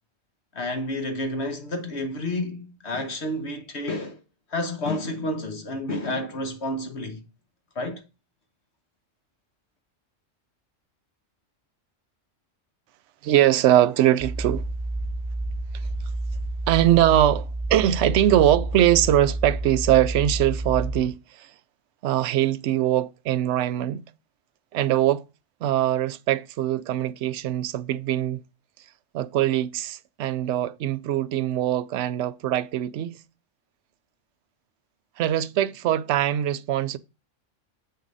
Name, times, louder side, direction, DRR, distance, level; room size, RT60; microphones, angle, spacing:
voice 1, 0.5-4.2 4.5-7.3 7.7-8.0, left 1 dB, 60° left, 1.4 m, -30 dB
voice 2, 13.2-14.6 16.7-21.5 22.0-24.0 24.7-25.2 25.6-28.4 29.1-33.2 35.2-37.0, right 12 dB, 70° right, 0.9 m, -22 dB
sound 1, 14.2-21.0, right 2 dB, 20° right, 1.5 m, -29 dB
7.7 x 6.5 x 4.0 m
omnidirectional pair, 1.3 m